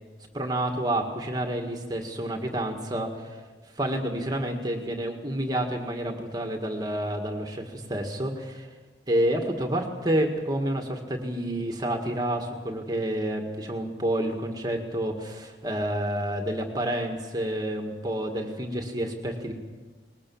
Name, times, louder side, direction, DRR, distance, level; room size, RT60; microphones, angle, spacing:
voice 1, 0.3-3.4 3.8-8.7 9.1-19.5, right 1 dB, 20° right, 3 dB, 1.9 m, -29 dB
20.5 x 20.5 x 7.2 m, 1.3 s
head